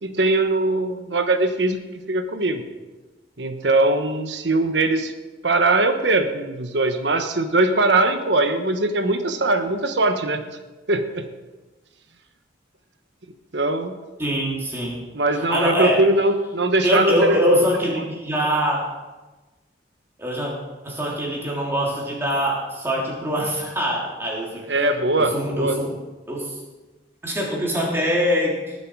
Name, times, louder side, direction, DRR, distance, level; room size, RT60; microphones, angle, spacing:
voice 1, 0.0-1.8 2.1-2.6 3.4-5.1 5.4-10.4 10.9-11.2 13.5-14.0 15.1-17.4 18.0-18.1 24.7-25.7, right 2 dB, 75° right, 7 dB, 1.2 m, -21 dB
voice 2, 14.2-15.0 15.3-16.0 16.8-18.8 20.2-20.5 20.8-24.6 25.2-25.9 26.3-26.6 27.2-28.8, equal, 15° right, -4 dB, 3.3 m, -23 dB
20.0 x 7.7 x 4.7 m, 1.2 s
head